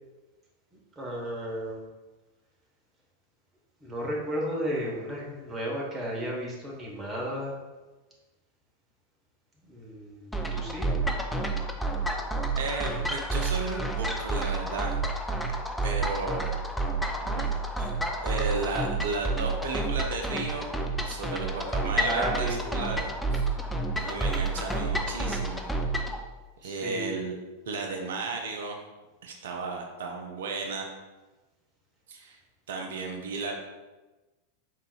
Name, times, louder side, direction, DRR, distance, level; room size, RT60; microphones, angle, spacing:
voice 1, 1.0-1.8 3.8-7.5 9.6-10.9 21.9-22.6 26.6-27.1, right 1 dB, 20° right, -3 dB, 1.2 m, -33 dB
sound 1, 10.3-26.2, right 2 dB, 5° left, 0.4 m, -30 dB
voice 2, 12.5-15.3 15.8-16.6 16.9-17.9 18.2-23.5 24.0-25.6 26.6-27.4 27.7-28.8 29.2-30.9 32.1-32.4 32.7-33.6, right 3 dB, 60° right, 1 dB, 0.6 m, -34 dB
4.7 x 3.6 x 2.4 m, 1.2 s
figure-of-eight pair, 90°, 0 cm